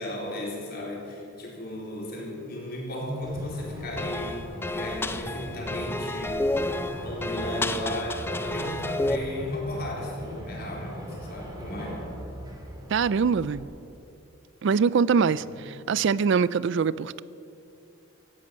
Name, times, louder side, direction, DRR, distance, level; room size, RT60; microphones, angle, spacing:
voice 1, 0.0-6.5 6.8-12.1 15.2-15.5, left 1 dB, 50° left, -2 dB, 4.0 m, -35 dB
sound 1, 3.2-13.6, equal, 20° right, 2.4 m, -40 dB
sound 2, 4.0-9.2, left 2 dB, 10° left, 0.5 m, -30 dB
voice 2, 12.9-13.7 14.6-17.2, right 6 dB, 60° right, 19 dB, 0.4 m, -23 dB
16.5 x 11.5 x 7.6 m, 2.6 s
head